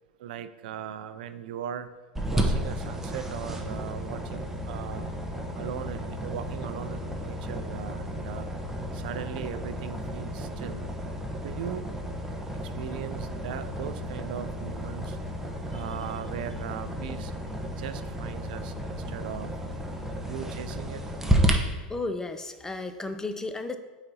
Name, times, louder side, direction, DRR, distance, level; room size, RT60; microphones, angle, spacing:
voice 1, 0.2-1.9 2.3-5.1 5.5-8.5 8.9-10.9 11.4-11.9 12.6-15.2 15.7-17.3 17.7-19.5 20.2-21.0, right 9 dB, 70° right, 12 dB, 0.4 m, -39 dB
sound 1, 2.1-21.5, equal, 5° right, 0.9 m, -32 dB
voice 2, 21.9-23.8, left 2 dB, 10° left, 8 dB, 0.5 m, -33 dB
8.6 x 4.0 x 2.9 m, 1.2 s
hypercardioid pair, 95°, 5 cm